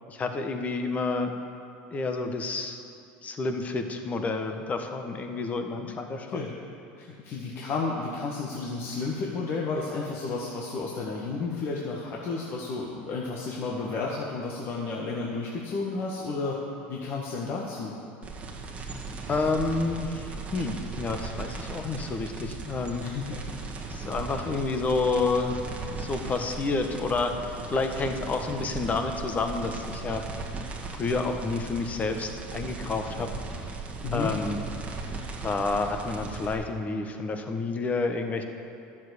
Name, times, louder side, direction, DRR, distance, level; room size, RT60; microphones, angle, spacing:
voice 1, 0.1-1.3 1.9-2.8 3.2-6.4 19.3-23.0 23.9-25.6 25.8-30.2 30.9-33.4 34.1-34.6 35.4-38.4, left 3 dB, 30° left, 5 dB, 1.3 m, -29 dB
voice 2, 7.0-16.6 16.9-17.9 23.0-23.4 34.0-34.3, left 4 dB, 50° left, -3 dB, 1.6 m, -32 dB
sound 1, 18.2-36.5, right 4 dB, 25° right, 1.8 m, -37 dB
12.0 x 7.4 x 8.3 m, 2.8 s
supercardioid pair, 100°, 5 cm